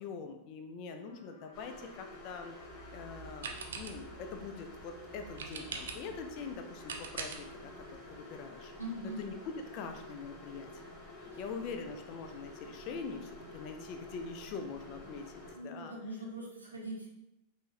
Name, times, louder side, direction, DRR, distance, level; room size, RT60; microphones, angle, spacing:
voice 1, 0.0-2.6 2.9-8.7 9.0-10.8 11.2-15.9, left 5 dB, 40° left, 6 dB, 0.5 m, -44 dB
Trumpet, 0.9-9.0, left 2 dB, 65° left, 0.8 m, -61 dB
sound 1, 1.5-15.5, left 1 dB, 25° left, 1.3 m, -50 dB
sound 2, 2.6-8.2, right 5 dB, 60° right, 0.5 m, -45 dB
voice 2, 8.8-9.2 11.3-11.4 15.5-17.1, right 1 dB, 80° right, -4 dB, 1.2 m, -42 dB
5.5 x 2.8 x 2.5 m, 0.89 s
figure-of-eight pair, 90°, 0 cm